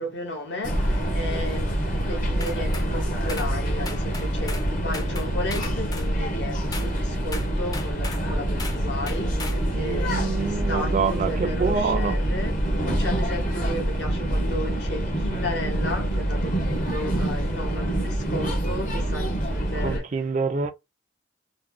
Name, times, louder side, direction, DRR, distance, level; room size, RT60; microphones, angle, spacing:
voice 1, 0.0-20.1, left 1 dB, 70° left, 1.2 m, -34 dB
sound 1, 0.6-20.0, right 1 dB, 45° left, 0.9 m, -26 dB
sound 2, 2.4-2.9 3.3-3.5 3.9-4.7 4.9-6.1 6.7-6.9 7.3-8.2 8.6-8.8 9.1-9.6, left 3 dB, 20° left, 0.5 m, -37 dB
voice 2, 9.7-12.2 19.8-20.7, right 5 dB, 40° right, 0.4 m, -26 dB
3.0 x 2.1 x 3.5 m
head